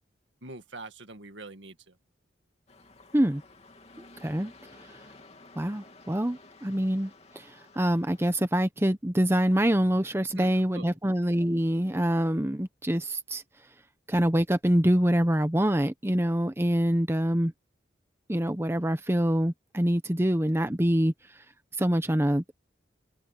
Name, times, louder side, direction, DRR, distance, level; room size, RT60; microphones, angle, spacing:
voice 1, 0.4-2.0 10.4-10.9, right 3 dB, 75° right, 2.0 m, -44 dB
sound 1, 2.7-8.3, left 3 dB, 35° left, 3.0 m, -53 dB
voice 2, 4.2-4.5 5.6-13.4 14.1-17.5 18.3-21.1 21.8-22.5, equal, 15° right, 0.9 m, -25 dB
head